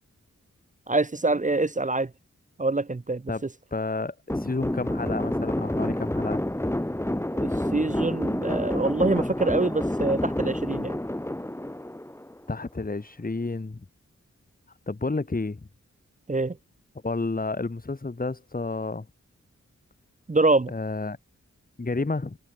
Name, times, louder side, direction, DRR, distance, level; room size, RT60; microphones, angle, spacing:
voice 1, 0.9-2.1 2.6-3.3 7.4-11.0 16.3-16.6 20.3-20.7, right 2 dB, 25° right, 0.8 m, -25 dB
voice 2, 3.7-6.4 12.5-13.8 14.9-15.7 17.0-19.0 20.7-21.2 21.8-22.4, left 3 dB, 30° left, 1.8 m, -30 dB
sound 1, 4.3-12.6, left 1 dB, 10° left, 1.8 m, -29 dB
wide cardioid pair, 65°, 30 cm